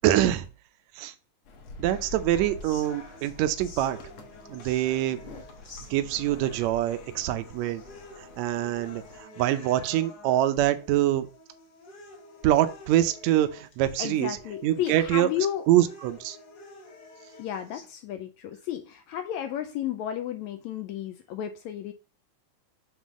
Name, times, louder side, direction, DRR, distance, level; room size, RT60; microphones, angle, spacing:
voice 1, 0.0-0.5 1.0-1.1 1.8-4.0 4.5-5.2 5.9-7.8 8.4-11.3 12.4-14.4 14.6-15.3 15.7-16.4, right 13 dB, 75° right, 1.8 m, -25 dB
sound 1, 1.4-9.2, left 2 dB, 60° left, 1.7 m, -46 dB
sound 2, 1.8-17.9, left 2 dB, 40° left, 1.8 m, -49 dB
voice 2, 14.0-15.6 17.4-21.9, left 10 dB, 75° left, 1.7 m, -33 dB
7.5 x 3.2 x 6.2 m
omnidirectional pair, 3.6 m